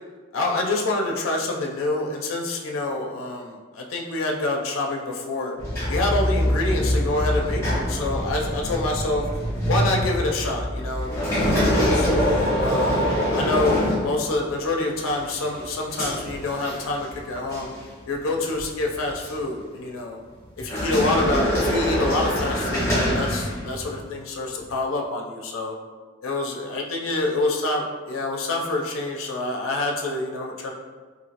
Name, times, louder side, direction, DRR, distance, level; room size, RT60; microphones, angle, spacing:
voice 1, 0.3-5.5 5.9-9.2 9.7-12.1 12.6-17.7 18.1-20.2 20.6-25.8 26.2-30.7, left 2 dB, 90° left, 1 dB, 0.4 m, -27 dB
sound 1, 5.6-14.6 15.1-17.2 17.5-17.8 18.5-19.4 20.6-23.9, equal, 15° left, 1.0 m, -24 dB
2.9 x 2.6 x 2.8 m, 1.4 s
head